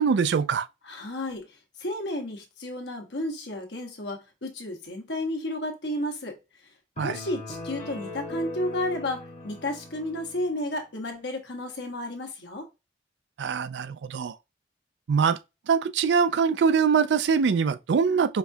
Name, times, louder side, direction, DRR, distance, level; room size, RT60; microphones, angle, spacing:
voice 1, 0.0-0.7 7.0-7.2 13.4-14.4 15.1-15.4 15.7-18.4, right 6 dB, 75° right, 0.4 m, -23 dB
voice 2, 0.8-6.3 7.0-12.7, left 1 dB, 75° left, 1.2 m, -32 dB
sound 1, 7.0-10.5, left 2 dB, 40° left, 1.1 m, -39 dB
5.1 x 2.4 x 2.7 m
head